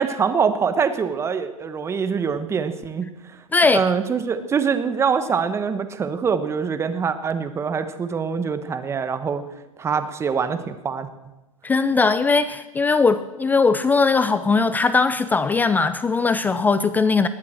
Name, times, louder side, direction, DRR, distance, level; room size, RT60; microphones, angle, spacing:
voice 1, 0.0-3.1 3.6-9.4 9.8-11.1, right 6 dB, 15° right, 10 dB, 1.1 m, -24 dB
voice 2, 3.5-3.8 11.6-17.3, left 4 dB, 10° left, 13 dB, 0.5 m, -19 dB
20.0 x 7.5 x 7.7 m, 1.1 s
figure-of-eight pair, 110°, 18 cm